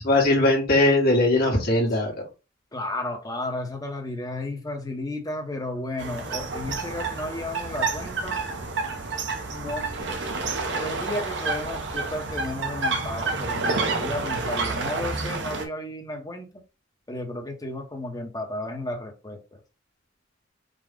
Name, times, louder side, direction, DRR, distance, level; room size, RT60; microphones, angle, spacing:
voice 1, 0.0-2.1, left 2 dB, 50° left, 1.7 m, -20 dB
voice 2, 2.7-8.4 9.5-9.9 10.7-16.5 17.1-19.4, left 1 dB, 20° left, 1.0 m, -33 dB
sound 1, 6.0-15.7, right 3 dB, 60° right, 0.9 m, -29 dB
5.2 x 2.4 x 3.7 m
head